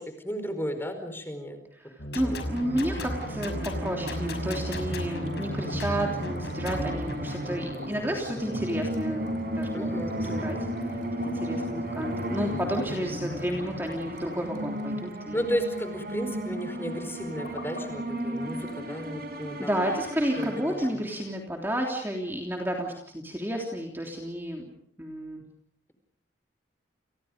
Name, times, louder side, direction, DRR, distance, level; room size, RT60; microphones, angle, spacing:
voice 1, 0.0-1.6 2.2-2.5 9.7-10.5 15.3-19.7 20.2-21.0, equal, 10° left, 7 dB, 4.8 m, -34 dB
voice 2, 1.8-9.9 10.2-15.4 19.6-24.6 25.0-25.4, equal, 10° right, 0 dB, 3.3 m, -31 dB
sound 1, 2.0-7.2, left 1 dB, 60° left, 6.2 m, -35 dB
sound 2, 2.4-21.2, equal, 50° right, 6.5 m, -34 dB
sound 3, 3.2-15.9 16.2-16.6 17.1-19.0 19.3-19.4 19.8-19.9 20.4-20.5 20.8-21.0, left 2 dB, 85° left, 6.8 m, -47 dB
30.0 x 30.0 x 5.2 m, 0.69 s
head